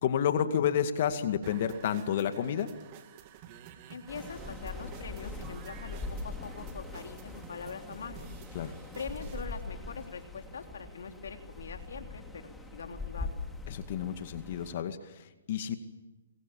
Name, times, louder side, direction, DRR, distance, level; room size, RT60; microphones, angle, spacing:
voice 1, 0.0-2.7 8.5-8.8 13.7-15.8, left 9 dB, 50° left, 8 dB, 2.2 m, -30 dB
sound 1, 1.4-9.4, right 9 dB, 35° right, 2.6 m, -51 dB
voice 2, 3.9-8.3 8.9-13.3, left 5 dB, 75° left, 5 dB, 3.3 m, -43 dB
sound 2, 4.1-14.7, left 3 dB, 5° left, 2.3 m, -42 dB
28.5 x 23.0 x 7.2 m, 1.1 s
hypercardioid pair, 145°, 0 cm